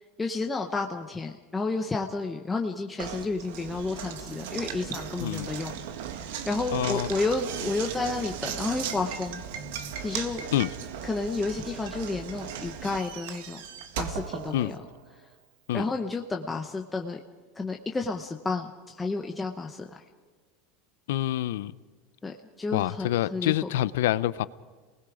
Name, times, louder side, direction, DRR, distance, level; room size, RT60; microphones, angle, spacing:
voice 1, 0.2-9.4 10.0-10.4 11.0-13.6 14.0-14.8 15.7-17.2 17.6-20.0 22.2-23.5, left 3 dB, 10° left, 0.9 m, -31 dB
Knock, 3.0-15.1, right 8 dB, 80° right, 1.7 m, -37 dB
voice 2, 6.7-7.1 10.5-10.7 14.5-14.7 15.7-15.8 21.1-21.7 22.7-24.5, left 13 dB, 85° left, 0.6 m, -26 dB
28.0 x 20.0 x 5.0 m
supercardioid pair, 155°, 0 cm